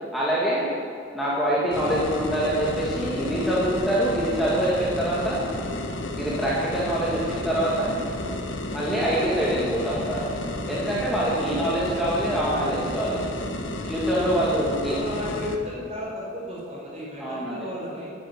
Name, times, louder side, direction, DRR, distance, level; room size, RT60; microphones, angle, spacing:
voice 1, 0.1-0.7 1.1-5.4 6.2-7.9 8.7-10.3 10.7-13.2 13.8-15.0 17.2-17.7, right 1 dB, ahead, -8 dB, 2.2 m, -25 dB
sound 1, 1.7-15.6, left 1 dB, 85° left, 1.4 m, -32 dB
voice 2, 14.8-18.1, left 1 dB, 35° right, -4 dB, 4.9 m, -34 dB
12.0 x 10.5 x 9.4 m, 2.4 s
head